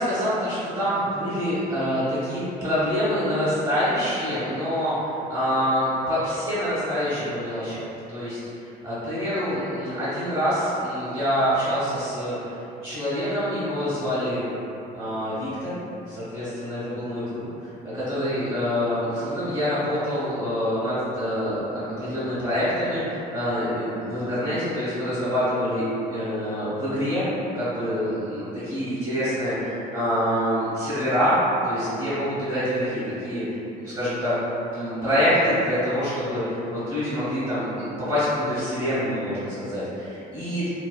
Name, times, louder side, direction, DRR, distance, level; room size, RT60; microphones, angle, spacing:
voice 1, 0.0-7.8 8.1-8.4 8.8-12.5 12.8-14.5 14.9-15.8 16.1-17.4 17.9-25.8 26.1-27.3 27.5-31.4 31.6-34.3 34.7-40.7, equal, 25° right, -13 dB, 0.9 m, -26 dB
2.5 x 2.4 x 2.2 m, 2.8 s
cardioid pair, 110°, 17 cm